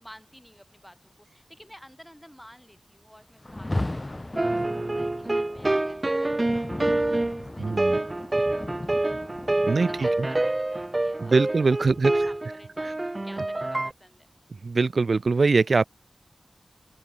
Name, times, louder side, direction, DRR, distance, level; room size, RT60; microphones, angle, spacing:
voice 1, 0.0-8.0 8.5-9.2 9.7-11.3 11.6-14.3, equal, 5° left, 5.8 m, -52 dB
Rain, 3.4-12.5, left 1 dB, 30° left, 0.8 m, -37 dB
sound 1, 4.4-13.9, right 2 dB, 35° right, 1.0 m, -27 dB
voice 2, 7.6-8.0 9.7-9.9 11.3-12.1 14.6-15.8, right 4 dB, 80° right, 0.4 m, -22 dB
open air
wide cardioid pair, 50°, 0 cm